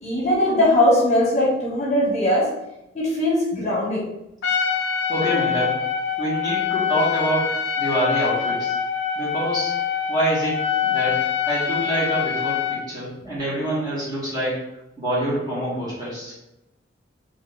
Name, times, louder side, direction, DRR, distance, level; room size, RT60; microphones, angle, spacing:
voice 1, 0.0-2.5 2.9-4.1, left 1 dB, 40° left, -4 dB, 0.9 m, -20 dB
Trumpet, 4.4-12.8, left 7 dB, 65° left, 0.5 m, -24 dB
voice 2, 5.1-5.7 6.2-7.5 7.8-8.7 9.1-9.7 10.1-10.6 10.8-11.2 11.5-14.6 15.0-16.3, right 1 dB, 20° right, -8 dB, 1.5 m, -25 dB
3.4 x 2.6 x 3.4 m, 0.88 s
head